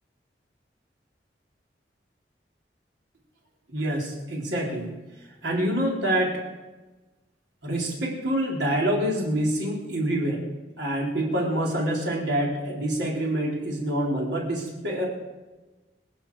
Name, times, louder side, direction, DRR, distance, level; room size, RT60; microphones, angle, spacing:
voice 1, 3.7-4.9 5.4-6.4 7.6-10.4 10.8-15.1, right 1 dB, 85° right, -2 dB, 4.1 m, -26 dB
25.5 x 10.0 x 4.9 m, 1.2 s
head